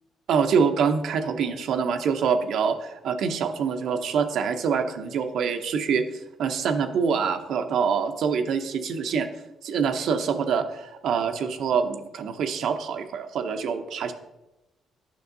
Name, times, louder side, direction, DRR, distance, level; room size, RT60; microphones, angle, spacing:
voice 1, 0.3-6.0 6.4-9.3 9.6-14.1, right 6 dB, 75° right, 6 dB, 0.6 m, -25 dB
9.4 x 6.0 x 2.6 m, 0.98 s
cardioid pair, 90°, 0 cm